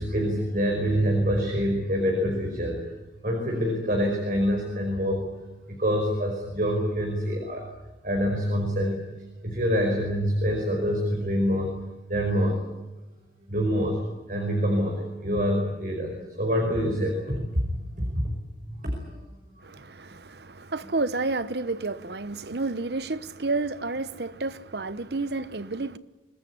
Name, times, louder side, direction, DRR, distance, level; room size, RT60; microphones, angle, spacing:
voice 1, 0.0-2.9 3.2-5.3 5.7-7.7 8.0-9.0 9.4-11.7 12.1-12.6 13.5-14.0 14.3-17.6 18.0-18.3 18.7-19.0, equal, 50° right, 5.2 m, -26 dB
voice 2, 19.6-26.0, right 3 dB, 65° right, 1.1 m, -30 dB
25.0 x 20.5 x 9.7 m
head